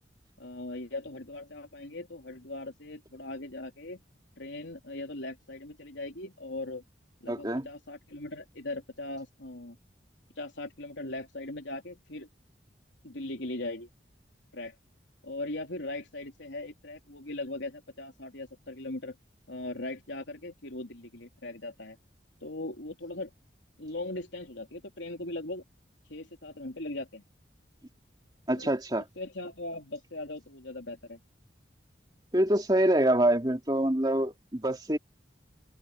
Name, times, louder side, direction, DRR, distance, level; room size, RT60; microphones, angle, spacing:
voice 1, 0.4-4.0 4.4-6.8 7.2-9.8 10.4-12.3 13.0-13.9 14.5-14.7 15.2-19.1 19.5-22.0 22.4-23.3 23.8-25.6 26.1-27.2 28.5-31.2, left 2 dB, 80° left, 3.2 m, -39 dB
voice 2, 7.3-7.7 28.5-29.0 32.3-35.0, right 1 dB, 20° right, 2.7 m, -25 dB
open air
head